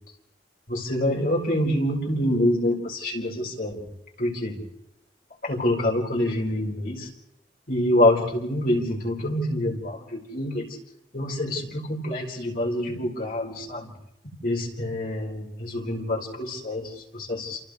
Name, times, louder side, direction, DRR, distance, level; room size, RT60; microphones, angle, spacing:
voice 1, 0.7-3.8 4.2-4.6 5.4-7.1 7.7-10.7 11.1-13.9 14.4-17.6, left 1 dB, 50° left, -1 dB, 4.5 m, -26 dB
29.0 x 28.5 x 3.2 m, 0.83 s
head